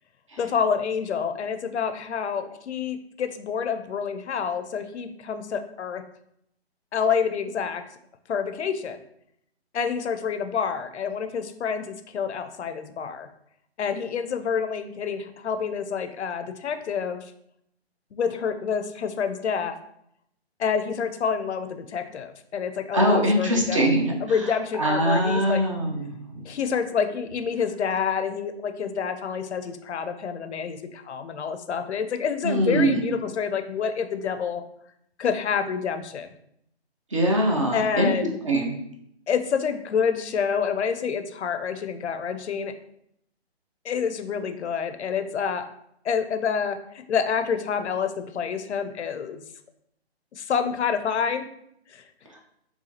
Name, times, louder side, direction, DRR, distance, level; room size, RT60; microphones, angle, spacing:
voice 1, 0.4-6.0 6.9-7.8 8.3-9.0 9.7-13.3 13.8-17.3 18.1-19.8 20.6-23.9 24.2-25.6 26.5-34.6 35.2-36.3 37.7-38.3 39.3-42.7 43.8-45.7 46.0-49.4 50.3-51.5 51.9-52.0, left 6 dB, 85° left, 9 dB, 0.5 m, -28 dB
voice 2, 22.9-24.4 24.8-26.1 32.4-33.1 37.1-38.1 38.5-38.7, right 1 dB, 30° right, 0 dB, 0.4 m, -22 dB
4.0 x 2.3 x 2.7 m, 0.76 s
hypercardioid pair, 150°, 33 cm